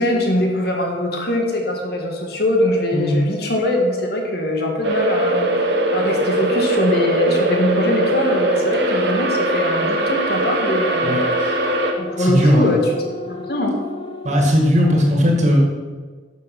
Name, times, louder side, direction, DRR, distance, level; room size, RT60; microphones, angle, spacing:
voice 1, 0.0-11.6 12.0-12.8 13.3-13.8, left 1 dB, 55° left, 1 dB, 2.0 m, -22 dB
sound 1, 4.8-11.9, right 1 dB, 65° right, 1.5 m, -20 dB
sound 2, 5.3-14.4, left 2 dB, 25° left, 1.1 m, -33 dB
voice 2, 12.2-12.7 14.2-15.6, equal, 40° right, 0 dB, 2.3 m, -17 dB
11.5 x 7.1 x 6.1 m, 1.5 s
head